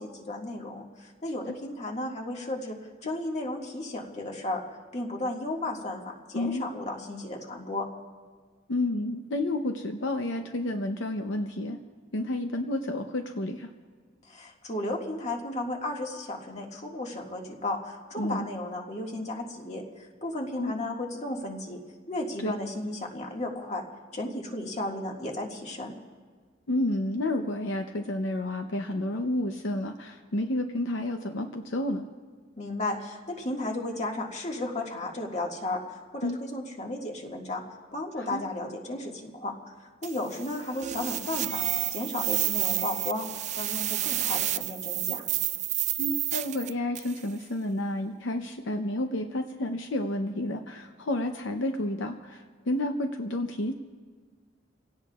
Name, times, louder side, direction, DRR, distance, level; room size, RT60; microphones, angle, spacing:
voice 1, 0.0-2.8 3.0-4.6 4.9-7.9 14.3-21.8 22.1-23.8 24.1-25.9 32.6-37.6 37.9-39.5 40.0-41.6 41.9-43.3 43.6-45.2, left 1 dB, 35° left, 0 dB, 1.9 m, -34 dB
voice 2, 6.3-6.7 8.7-11.8 12.1-13.7 18.2-18.5 20.6-20.7 22.4-22.5 26.7-32.0 36.2-36.4 38.2-38.4 46.0-53.7, left 1 dB, 70° left, 5 dB, 0.7 m, -30 dB
sound 1, 40.0-47.2, right 14 dB, 35° right, 0.4 m, -30 dB
29.0 x 17.0 x 2.4 m, 1.6 s
head